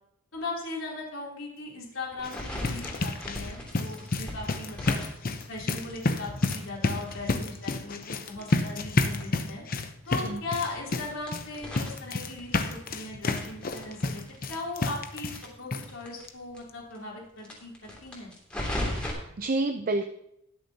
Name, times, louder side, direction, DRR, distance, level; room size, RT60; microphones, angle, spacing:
voice 1, 0.3-5.0 5.5-9.6 10.1-14.2 14.5-15.3 15.6-18.3, left 3 dB, 80° left, -3 dB, 3.3 m, -38 dB
sound 1, 2.1-15.5 15.7-15.8 16.3-16.4 16.7-16.8, left 2 dB, 45° left, 0.8 m, -30 dB
sound 2, 2.2-6.1 6.4-9.4 9.7-9.8 10.0-10.1 10.5-12.9 13.2-16.3 16.5-16.6 16.9-17.0 17.4-19.1, left 1 dB, 5° left, 2.7 m, -38 dB
voice 2, 18.9-20.1, right 2 dB, 45° right, 8 dB, 0.5 m, -30 dB
20.5 x 6.9 x 2.9 m, 0.78 s
head